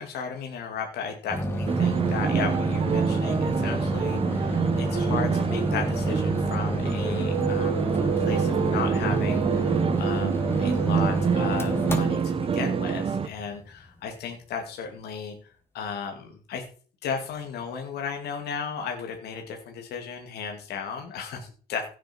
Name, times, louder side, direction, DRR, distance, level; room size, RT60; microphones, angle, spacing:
voice 1, 0.0-12.2 12.5-15.3 15.7-16.7 17.0-21.9, left 6 dB, 75° left, 3 dB, 2.5 m, -35 dB
sound 1, 1.3-13.9, equal, 15° left, 2.0 m, -29 dB
sound 2, 1.7-13.3, right 6 dB, 35° right, 1.0 m, -27 dB
sound 3, 7.2-13.0, right 9 dB, 60° right, 2.1 m, -32 dB
16.0 x 7.6 x 4.6 m, 0.40 s
cardioid pair, 110°, 17 cm